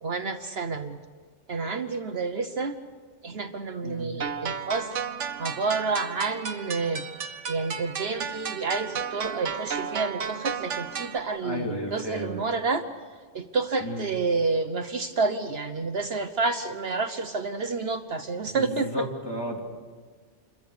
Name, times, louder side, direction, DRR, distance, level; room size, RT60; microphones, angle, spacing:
voice 1, 0.0-1.0 1.5-2.8 3.2-5.0 5.4-7.0 7.5-12.9 13.3-19.1, right 4 dB, 60° right, 8 dB, 1.1 m, -29 dB
sound 1, 4.2-11.2, right 6 dB, 80° right, 1.4 m, -33 dB
voice 2, 11.4-12.4 13.8-14.0 18.5-18.7 18.9-19.6, equal, 20° left, 0 dB, 3.2 m, -33 dB
27.5 x 22.5 x 6.8 m, 1.5 s
omnidirectional pair, 1.2 m